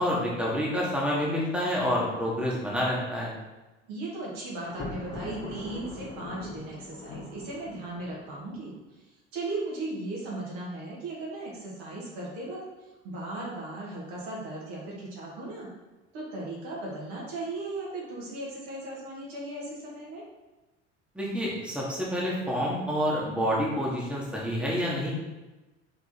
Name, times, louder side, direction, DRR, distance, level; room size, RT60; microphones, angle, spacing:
voice 1, 0.0-3.3 21.2-25.1, equal, 5° right, -5 dB, 1.8 m, -28 dB
voice 2, 3.9-8.7 9.3-12.6 13.0-15.7 16.1-20.2, right 2 dB, 60° right, -5 dB, 2.0 m, -37 dB
Thunder, 4.6-8.7, left 2 dB, 35° left, 1.8 m, -41 dB
5.2 x 4.5 x 4.4 m, 1.1 s
figure-of-eight pair, 65°, 36 cm